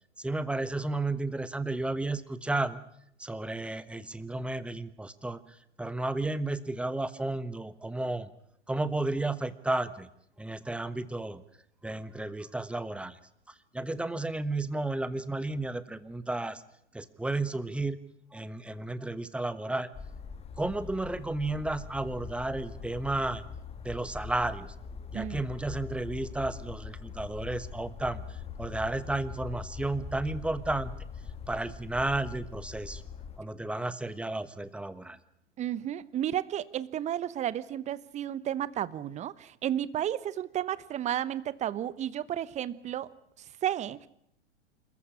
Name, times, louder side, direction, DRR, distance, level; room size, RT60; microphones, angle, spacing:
voice 1, 0.2-2.8 3.2-8.3 8.7-10.1 10.4-11.4 11.8-13.2 13.7-16.6 16.9-18.0 18.3-19.9 20.6-23.4 23.8-24.7 25.1-30.9 31.5-33.0 33.4-35.2, right 2 dB, 5° right, 14 dB, 1.2 m, -33 dB
sound 1, 19.9-33.4, left 6 dB, 15° left, 1.9 m, -42 dB
voice 2, 25.1-25.4 35.6-43.1 43.4-44.1, right 11 dB, 20° right, 19 dB, 0.9 m, -32 dB
27.0 x 15.0 x 10.0 m, 0.74 s
figure-of-eight pair, 105°, 34 cm